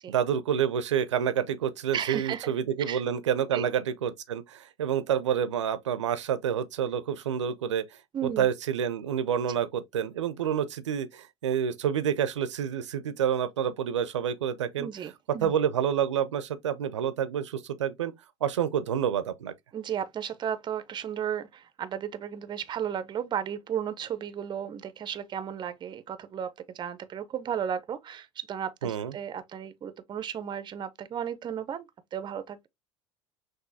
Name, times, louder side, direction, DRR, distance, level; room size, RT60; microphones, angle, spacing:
voice 1, 0.1-7.9 8.2-14.9 15.4-18.1 18.4-19.5 28.8-29.1, right 8 dB, 80° right, 0.6 m, -28 dB
voice 2, 1.9-2.5 2.9-3.0 3.5-3.7 8.1-8.5 9.5-9.6 14.8-15.5 19.7-32.7, right 9 dB, 30° right, 0.6 m, -34 dB
6.1 x 2.6 x 2.7 m
hypercardioid pair, 75°, 15 cm